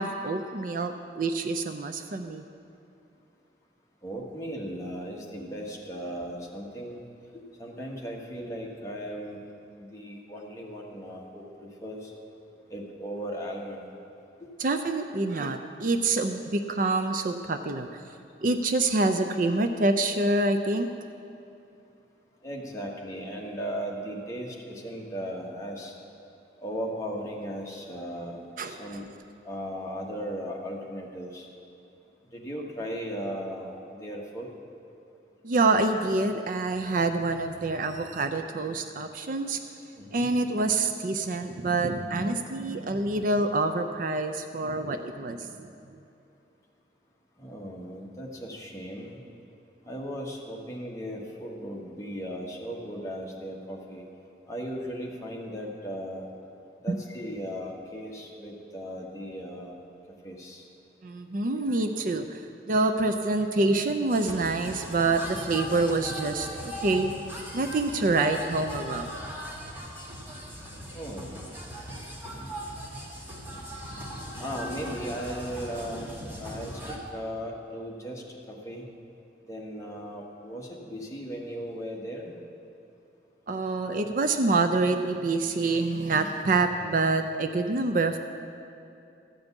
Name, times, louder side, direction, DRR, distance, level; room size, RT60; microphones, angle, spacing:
voice 1, 0.0-2.4 14.6-17.9 18.4-20.9 28.6-28.8 35.4-39.6 40.1-45.7 56.9-57.0 61.0-62.4 62.7-67.2 67.5-69.1 83.5-88.3, right 3 dB, 45° right, 7 dB, 0.4 m, -26 dB
voice 2, 4.0-7.0 7.3-9.4 9.8-12.1 12.7-13.9 14.4-14.5 22.4-25.9 26.6-29.1 29.4-31.5 32.3-34.5 39.9-40.3 47.4-49.2 49.8-54.0 54.5-56.3 56.8-59.8 60.2-60.7 70.9-71.3 74.4-76.1 76.4-78.9 79.5-82.3, equal, 15° left, -2 dB, 1.3 m, -37 dB
sound 1, 64.1-77.0, equal, 10° right, 1.4 m, -39 dB
13.5 x 5.2 x 8.2 m, 2.7 s
head